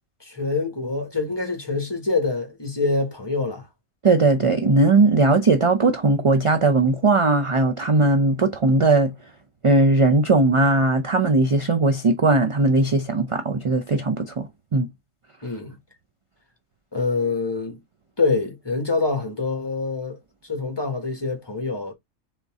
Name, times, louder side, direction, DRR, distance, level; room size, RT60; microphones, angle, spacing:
voice 1, 0.2-3.7 15.4-15.8 16.9-17.8 18.2-20.2 20.4-21.9, left 3 dB, 20° left, 1.4 m, -25 dB
voice 2, 4.0-9.1 9.6-14.5 14.7-14.9, right 3 dB, 45° right, 0.4 m, -18 dB
4.1 x 3.6 x 3.5 m
omnidirectional pair, 1.4 m